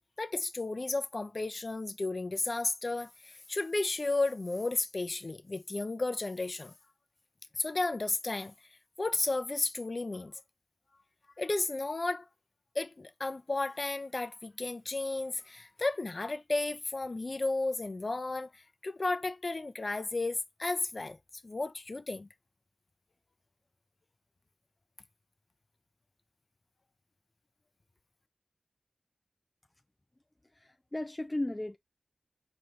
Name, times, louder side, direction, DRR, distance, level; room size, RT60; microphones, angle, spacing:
voice 1, 0.2-6.7 7.6-8.5 9.0-10.3 11.4-12.2 12.7-21.2 21.4-22.3, left 2 dB, 45° left, 0.8 m, -33 dB
voice 2, 30.5-31.8, left 1 dB, 20° left, 0.4 m, -35 dB
4.7 x 2.9 x 3.3 m
wide cardioid pair, 75°, 0 cm